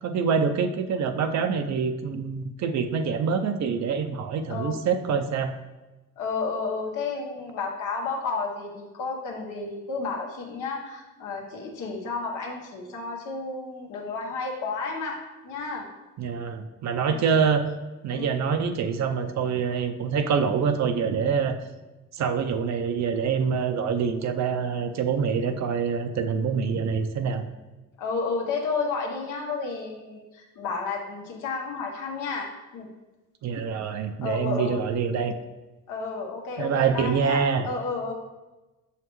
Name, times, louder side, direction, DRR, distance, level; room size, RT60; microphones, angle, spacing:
voice 1, 0.0-5.5 16.2-17.6 18.0-21.6 22.1-27.4 33.4-35.3 36.6-37.7, right 6 dB, 65° right, 7 dB, 0.7 m, -25 dB
voice 2, 6.2-15.9 17.0-17.2 18.1-18.3 28.0-32.9 34.2-34.8 35.9-38.1, left 4 dB, 85° left, 0 dB, 1.3 m, -32 dB
6.8 x 5.7 x 3.1 m, 1.1 s
cardioid pair, 90°, 30 cm